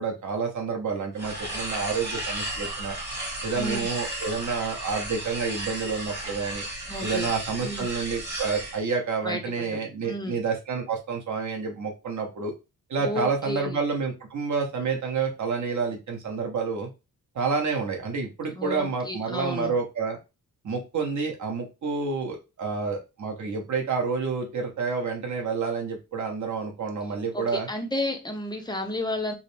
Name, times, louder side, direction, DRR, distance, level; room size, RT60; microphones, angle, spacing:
voice 1, 0.0-3.0 3.4-6.6 7.0-12.5 12.9-16.9 17.3-20.2 20.6-27.7, right 5 dB, 50° right, 1 dB, 1.0 m, -29 dB
sound 1, 1.1-8.8, right 1 dB, 30° right, 1.4 m, -34 dB
voice 2, 3.5-3.9 6.9-7.3 7.6-7.9 9.2-10.4 13.0-13.8 18.5-19.7 27.3-29.3, left 1 dB, 10° left, 3 dB, 0.6 m, -32 dB
5.0 x 2.0 x 3.3 m, 0.28 s
wide cardioid pair, 155°, 37 cm